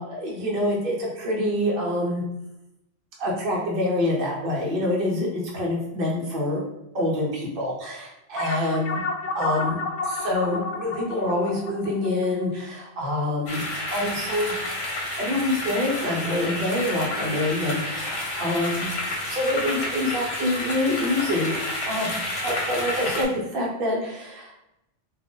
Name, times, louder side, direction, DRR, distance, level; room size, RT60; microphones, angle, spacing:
voice 1, 0.0-2.2 3.2-6.6 6.9-9.0 9.3-13.6 13.9-14.6 15.2-18.9 19.2-22.1 22.4-24.5, left 1 dB, 50° right, -2 dB, 1.1 m, -26 dB
sound 1, 8.4-13.2, left 3 dB, 80° left, 0.9 m, -31 dB
sound 2, 13.5-23.2, left 1 dB, 55° left, 1.1 m, -30 dB
3.8 x 2.6 x 3.6 m, 0.88 s
omnidirectional pair, 1.2 m